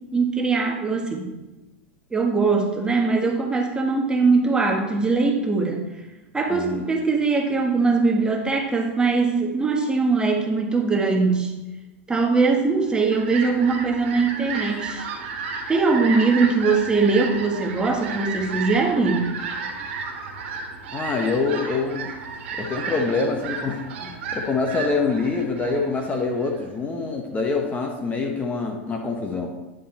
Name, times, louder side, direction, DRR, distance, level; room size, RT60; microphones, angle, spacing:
voice 1, 0.1-1.3 2.1-5.8 6.3-11.5 12.1-15.0 15.7-19.4, right 4 dB, 15° right, 1 dB, 1.6 m, -21 dB
voice 2, 6.5-6.9 20.9-22.1 22.6-29.5, left 4 dB, 20° left, 2 dB, 1.2 m, -25 dB
Fowl, 12.7-26.6, right 5 dB, 65° right, 1.7 m, -33 dB
10.0 x 5.5 x 4.3 m, 1.1 s
hypercardioid pair, 95°, 7 cm